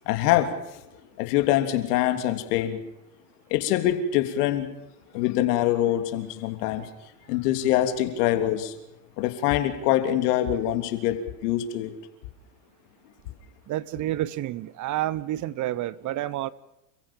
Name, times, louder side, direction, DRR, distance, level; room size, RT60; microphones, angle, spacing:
voice 1, 0.1-0.6 1.2-2.8 3.5-4.7 5.1-6.9 7.3-8.7 9.2-11.9, left 12 dB, 65° left, 3.4 m, -24 dB
voice 2, 13.7-16.5, right 14 dB, 35° right, 0.9 m, -29 dB
29.5 x 15.5 x 7.3 m
hypercardioid pair, 105°, 50 cm